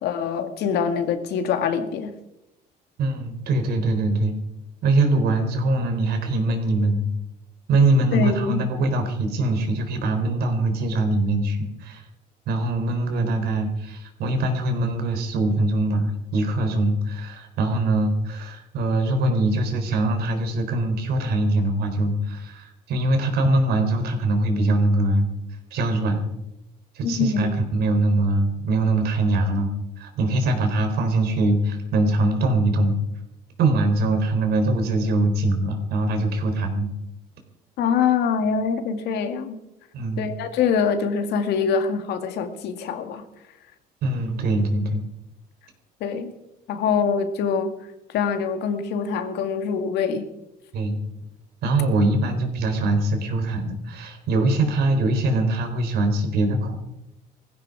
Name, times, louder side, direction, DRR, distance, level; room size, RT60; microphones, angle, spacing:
voice 1, 0.0-2.1 8.1-8.7 27.0-27.5 37.8-39.6 40.2-43.2 46.0-46.3 46.7-47.7 48.1-50.3, left 6 dB, 80° left, 7 dB, 2.2 m, -24 dB
voice 2, 3.0-4.4 4.8-7.0 7.7-12.0 12.5-25.3 25.7-26.2 26.9-29.7 30.0-32.9 33.6-36.9 39.9-40.3 44.0-45.0 50.7-51.0 51.6-56.8, right 2 dB, 70° right, 6 dB, 4.0 m, -22 dB
19.5 x 15.5 x 4.8 m, 0.87 s
cardioid pair, 110°, 17 cm